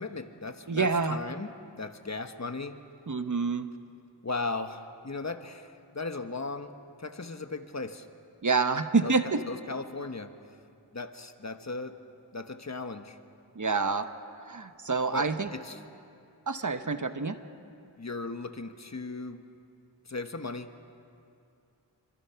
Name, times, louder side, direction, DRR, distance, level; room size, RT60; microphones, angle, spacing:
voice 1, 0.0-2.8 4.2-8.1 9.0-9.2 9.5-10.3 10.9-12.0 12.3-13.2 15.1-15.8 18.0-19.4 20.0-20.7, left 3 dB, 40° left, 8 dB, 1.3 m, -37 dB
voice 2, 0.7-1.2 3.1-3.7 8.4-9.4 13.6-14.1 14.5-15.5 16.5-17.4, right 4 dB, 45° right, 9 dB, 1.1 m, -27 dB
26.5 x 25.5 x 5.8 m, 2.6 s
wide cardioid pair, 75°, 42 cm